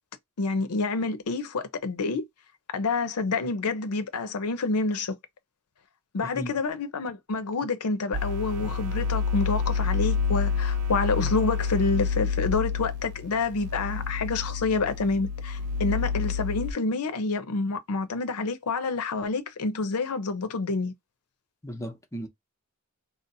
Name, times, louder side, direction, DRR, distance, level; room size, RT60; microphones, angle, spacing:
voice 1, 0.4-2.2 2.7-5.2 6.1-20.9, left 3 dB, 80° left, 0.6 m, -28 dB
voice 2, 6.2-6.5 21.6-22.3, equal, 15° left, 0.6 m, -36 dB
sound 1, 8.1-16.7, left 5 dB, 75° right, 0.4 m, -28 dB
2.6 x 2.0 x 3.9 m
head